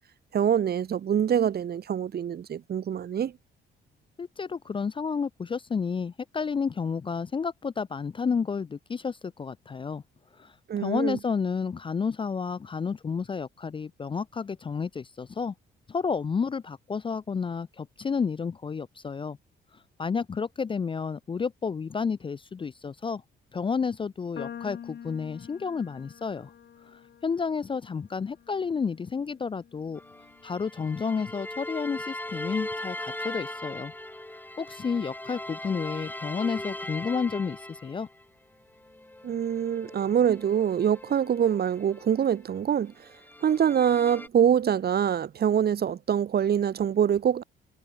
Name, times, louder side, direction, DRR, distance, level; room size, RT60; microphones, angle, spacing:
voice 1, 0.3-3.3 10.7-11.2 39.2-43.1 43.4-47.4, right 9 dB, 55° right, 1.4 m, -25 dB
voice 2, 4.2-10.0 10.4-15.5 15.9-19.4 20.0-23.2 23.5-26.5 26.9-30.0 30.4-33.9 34.6-38.1, left 5 dB, 25° left, 0.4 m, -31 dB
sound 1, 24.4-30.7, left 9 dB, 60° left, 4.6 m, -46 dB
sound 2, 30.0-38.2 38.8-42.6 43.0-44.3, left 1 dB, 10° left, 4.5 m, -39 dB
cardioid pair, 90°, 20 cm